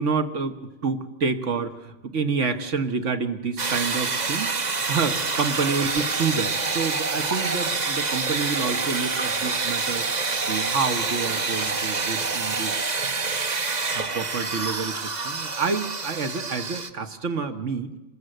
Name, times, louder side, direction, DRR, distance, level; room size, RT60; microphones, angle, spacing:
voice 1, 0.0-4.5 4.9-10.1 10.5-12.8 13.6-17.9, right 5 dB, 80° right, 7 dB, 1.7 m, -28 dB
Water In Sink, 3.6-16.9, right 4 dB, 40° right, 1.1 m, -27 dB
25.5 x 20.0 x 7.9 m, 1.0 s
omnidirectional pair, 1.3 m